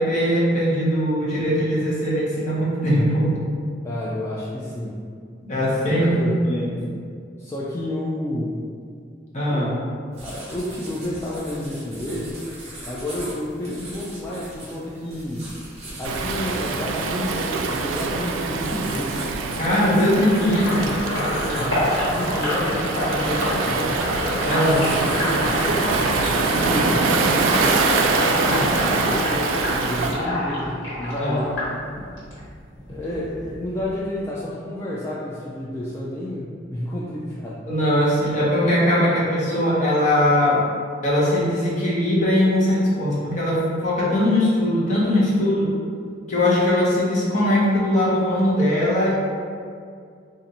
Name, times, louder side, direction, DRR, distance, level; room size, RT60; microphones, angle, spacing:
voice 1, 0.0-3.3 5.5-6.8 9.3-9.7 19.6-21.0 24.4-24.8 31.2-31.4 37.7-40.6 41.0-45.7 46.3-49.1, left 1 dB, 40° left, -7 dB, 0.9 m, -20 dB
voice 2, 3.8-5.0 5.9-6.4 7.4-8.6 9.5-9.7 10.2-12.4 12.9-15.5 16.0-19.2 21.4-24.1 24.6-25.8 26.5-31.6 32.9-37.6, left 1 dB, 15° left, -7 dB, 0.3 m, -30 dB
sound 1, 10.1-28.3, right 1 dB, 35° right, 1.0 m, -41 dB
Waves surf, 16.0-30.2, right 4 dB, 90° right, 0.3 m, -24 dB
Sink (filling or washing), 20.2-32.4 32.8-34.2, left 1 dB, 80° left, 1.4 m, -26 dB
2.7 x 2.5 x 4.1 m, 2.2 s
head